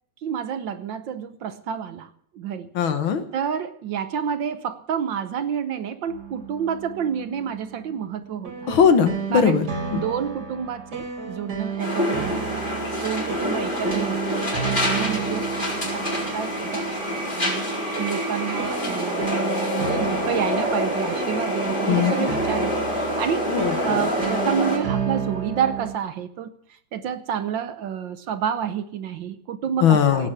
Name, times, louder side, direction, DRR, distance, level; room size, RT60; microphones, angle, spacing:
voice 1, 0.2-2.7 3.3-8.7 9.3-9.6 9.9-12.6 13.0-23.5 23.8-26.5 26.9-30.3, right 8 dB, 65° right, 11 dB, 1.5 m, -29 dB
voice 2, 2.8-3.2 8.7-9.6 9.9-10.0 21.9-22.1 23.5-23.7 29.8-30.3, left 7 dB, 70° left, 9 dB, 2.0 m, -19 dB
sound 1, 6.1-25.9, right 6 dB, 45° right, 3.1 m, -33 dB
sound 2, 11.8-24.8, equal, 20° left, 4.9 m, -26 dB
17.5 x 7.8 x 8.0 m, 0.65 s
omnidirectional pair, 2.4 m